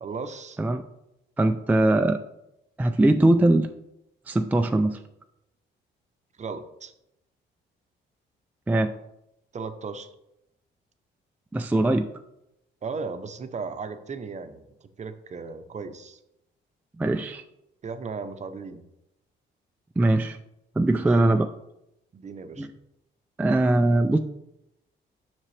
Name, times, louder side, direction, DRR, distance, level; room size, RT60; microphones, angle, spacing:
voice 1, 0.0-0.6 6.4-6.9 9.5-10.1 12.8-16.2 17.8-18.8 20.9-21.2 22.1-22.7, right 4 dB, 35° right, 9 dB, 0.7 m, -36 dB
voice 2, 1.4-2.2 2.8-3.7 4.3-5.0 8.7-8.9 11.5-12.1 17.0-17.4 20.0-20.4 20.8-21.5 22.6-22.7 23.4-24.2, right 2 dB, 10° right, 6 dB, 0.3 m, -21 dB
7.3 x 5.9 x 3.2 m, 0.86 s
cardioid pair, 90°, 20 cm